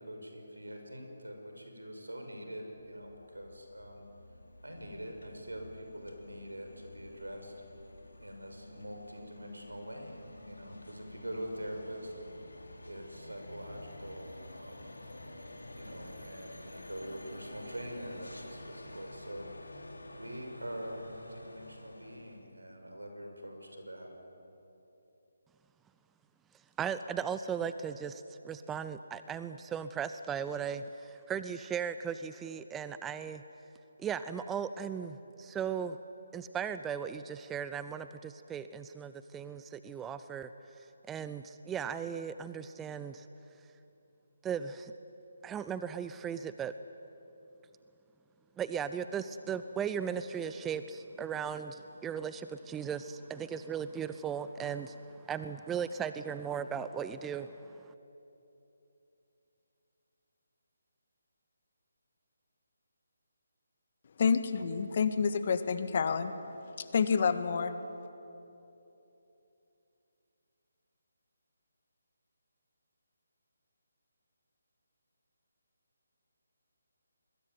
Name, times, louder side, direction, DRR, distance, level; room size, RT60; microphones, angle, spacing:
voice 1, 0.0-4.0 4.6-7.5 8.2-12.1 12.8-14.9 15.7-19.8 20.2-24.1, equal, 85° right, 3 dB, 6.1 m, -44 dB
sound 1, 2.7-22.5, left 1 dB, 80° left, 3.6 m, -50 dB
voice 2, 26.8-33.4 34.0-36.0 36.3-40.5 41.1-43.3 44.4-44.9 45.4-46.7 48.6-55.0 55.3-57.5, right 7 dB, 10° right, 12 dB, 0.6 m, -37 dB
voice 3, 64.2-66.3 66.8-67.7, left 6 dB, 45° left, 10 dB, 1.7 m, -28 dB
26.0 x 21.5 x 9.5 m, 2.9 s
figure-of-eight pair, 150°, 0 cm